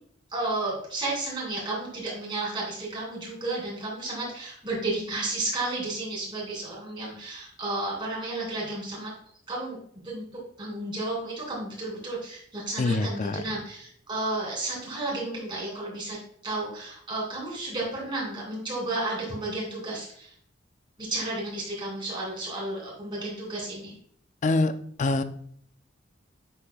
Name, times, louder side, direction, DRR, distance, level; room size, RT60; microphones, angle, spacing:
voice 1, 0.3-9.1 9.5-10.3 10.6-16.2 16.4-20.3 21.0-23.9, right 2 dB, 25° right, -4 dB, 2.8 m, -32 dB
voice 2, 12.8-13.4 24.4-24.7 25.0-25.2, left 2 dB, 40° left, 11 dB, 0.4 m, -24 dB
8.0 x 5.8 x 2.3 m, 0.62 s
head